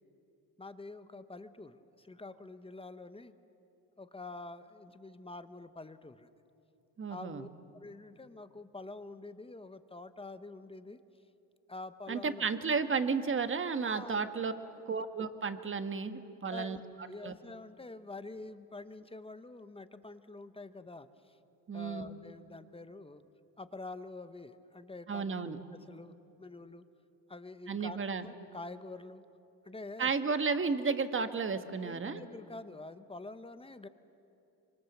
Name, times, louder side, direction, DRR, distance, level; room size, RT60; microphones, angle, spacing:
voice 1, 0.6-3.3 4.0-6.3 7.1-11.0 11.7-12.5 13.8-14.3 14.9-15.0 16.5-21.4 21.7-23.2 23.6-26.8 27.3-29.2 29.6-30.1 31.8-33.9, left 2 dB, 15° left, 11 dB, 0.9 m, -47 dB
voice 2, 7.0-7.5 12.1-14.5 14.9-16.8 17.2-17.3 21.7-22.1 25.1-25.6 27.7-28.3 30.0-32.2, right 5 dB, 30° right, 9 dB, 1.4 m, -33 dB
25.0 x 23.5 x 7.3 m, 2.9 s
cardioid pair, 100°, 42 cm